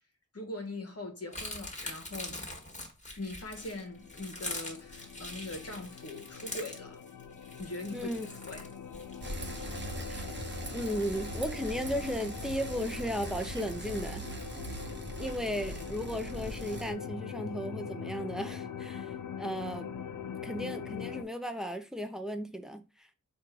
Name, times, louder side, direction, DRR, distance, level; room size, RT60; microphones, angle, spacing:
voice 1, 0.3-2.4 3.2-7.0 7.6-8.1 8.5-8.7, left 2 dB, 50° left, 1.1 m, -41 dB
sound 1, 1.3-9.9, left 1 dB, 25° left, 1.5 m, -43 dB
sound 2, 3.5-21.2, left 7 dB, 75° left, 0.5 m, -43 dB
voice 2, 7.9-8.3 10.1-10.3 10.7-14.3 15.2-19.9 20.4-23.1, equal, ahead, 0.6 m, -35 dB
Bicycle, 9.2-16.9, right 1 dB, 35° right, 0.9 m, -40 dB
4.4 x 2.5 x 4.6 m
wide cardioid pair, 55°, 32 cm